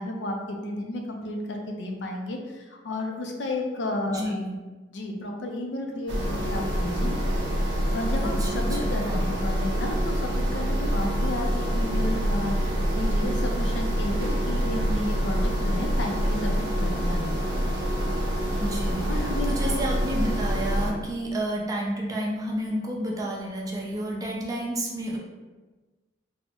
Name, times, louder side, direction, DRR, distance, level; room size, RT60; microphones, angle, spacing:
voice 1, 0.0-4.3 4.9-7.1 7.9-17.3 19.1-19.8, left 1 dB, 70° left, 2 dB, 0.5 m, -32 dB
voice 2, 4.1-4.5 8.2-9.3 18.6-25.2, right 1 dB, 20° right, -2 dB, 0.4 m, -31 dB
sound 1, 6.1-20.9, equal, 75° right, 0.5 m, -26 dB
3.4 x 2.0 x 2.9 m, 1.2 s
head